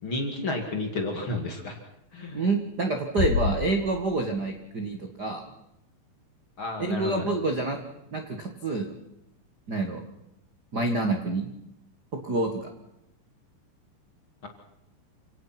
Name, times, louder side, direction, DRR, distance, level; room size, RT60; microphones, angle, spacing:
voice 1, 0.0-1.8 2.1-2.4 6.6-7.3, left 2 dB, 35° left, 3 dB, 2.4 m, -31 dB
voice 2, 2.3-5.4 6.8-7.8 8.1-8.9 9.7-10.0 10.7-11.5 12.2-12.7, right 3 dB, 60° right, 4 dB, 1.0 m, -27 dB
sound 1, 3.2-4.8, left 5 dB, 75° left, 4.5 m, -29 dB
28.0 x 18.0 x 6.0 m, 0.85 s
omnidirectional pair, 5.1 m